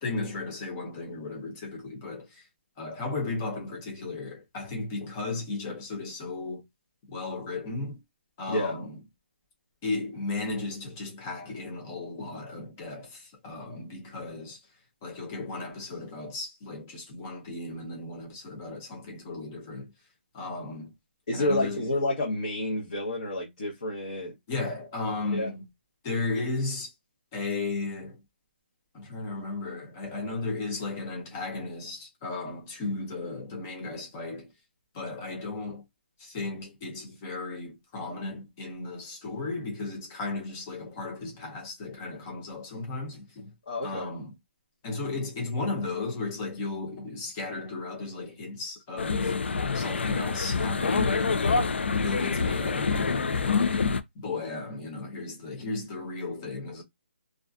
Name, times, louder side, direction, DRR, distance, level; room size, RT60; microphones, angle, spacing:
voice 1, 0.0-2.4 2.8-6.6 7.1-8.0 8.4-9.0 9.8-14.6 15.0-19.9 20.3-20.9 21.3-21.9 24.5-25.6 26.0-26.9 27.3-28.2 28.9-34.5 34.9-35.9 36.2-43.5 43.8-44.3 44.8-49.3 49.7-53.8 54.1-56.8, left 3 dB, 15° left, 0.5 m, -35 dB
voice 2, 8.5-8.8 21.3-24.3 25.3-25.5 43.7-44.1, left 1 dB, 35° left, 0.9 m, -29 dB
sound 1, 49.0-54.0, left 4 dB, 70° left, 0.4 m, -26 dB
2.6 x 2.4 x 2.3 m
hypercardioid pair, 180°, 6 cm